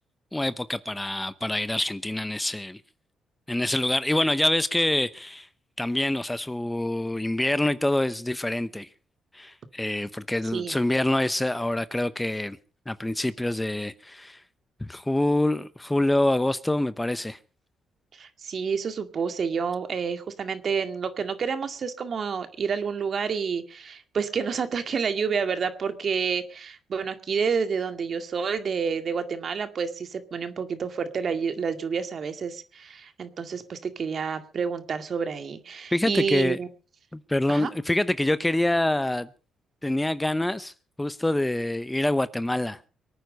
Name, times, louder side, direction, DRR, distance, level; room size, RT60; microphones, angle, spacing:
voice 1, 0.3-2.8 3.5-5.5 5.8-8.9 9.3-12.6 12.9-14.4 14.8-17.4 35.9-36.6 37.1-39.3 39.8-40.7 41.0-42.8, left 1 dB, 10° left, 0.8 m, -26 dB
voice 2, 18.1-36.7 37.5-37.7, right 6 dB, 50° right, 2.0 m, -29 dB
24.0 x 9.2 x 5.3 m
cardioid pair, 90°, 0 cm